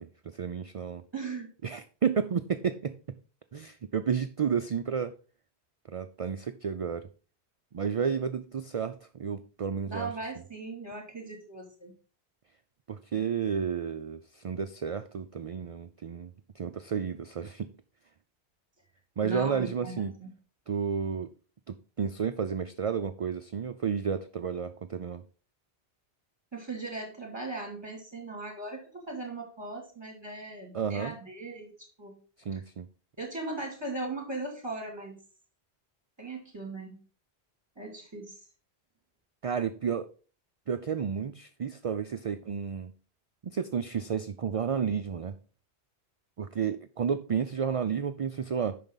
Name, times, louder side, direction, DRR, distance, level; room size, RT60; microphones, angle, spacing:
voice 1, 0.0-1.0 1.6-3.0 3.5-5.2 5.9-7.1 7.7-10.1 12.9-16.3 16.6-17.7 19.2-20.1 20.7-21.3 21.7-25.2 30.7-31.1 32.5-32.9 39.4-40.1 40.7-42.9 43.4-45.3 46.4-48.8, right 7 dB, 60° right, 10 dB, 0.3 m, -31 dB
voice 2, 1.1-1.5 9.9-11.9 19.2-20.3 26.5-32.2 33.2-35.2 36.2-37.0 37.8-38.4, right 2 dB, 25° right, 1 dB, 2.8 m, -38 dB
8.9 x 5.9 x 3.9 m, 0.38 s
omnidirectional pair, 1.1 m